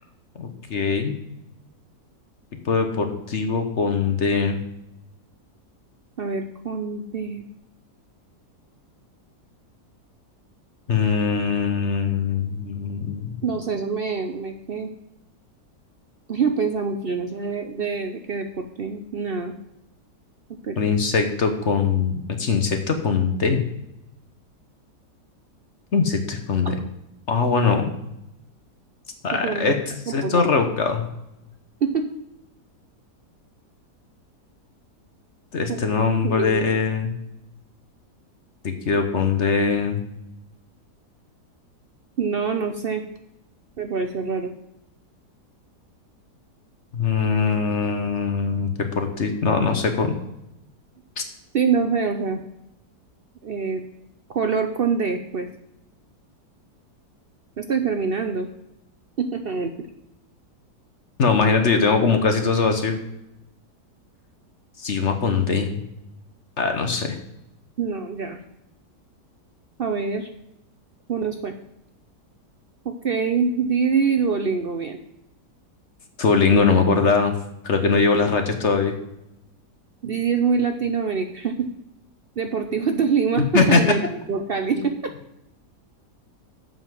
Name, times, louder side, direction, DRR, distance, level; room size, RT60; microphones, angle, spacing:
voice 1, 0.4-1.1 2.6-4.6 10.9-13.3 20.8-23.6 25.9-26.7 27.3-27.8 29.2-31.1 35.5-37.1 38.8-40.0 46.9-48.7 48.9-50.1 51.2-51.3 61.2-63.0 64.8-65.8 66.6-67.2 76.2-77.3 77.6-78.9 83.5-83.8 84.8-84.9, left 5 dB, 50° left, 6 dB, 1.2 m, -21 dB
voice 2, 6.2-7.4 13.4-14.9 16.3-19.5 20.6-20.8 26.6-26.7 29.3-29.7 30.1-30.6 31.8-32.1 35.7-35.8 36.2-36.7 42.2-43.0 43.8-44.5 51.5-52.4 53.4-53.8 54.3-55.5 57.6-58.5 59.2-59.9 67.8-68.4 69.8-70.3 71.1-71.6 72.8-75.0 80.0-81.7 82.4-84.0 84.3-85.1, right 5 dB, 60° right, 6 dB, 0.6 m, -25 dB
7.6 x 5.8 x 7.3 m, 0.84 s
omnidirectional pair, 1.8 m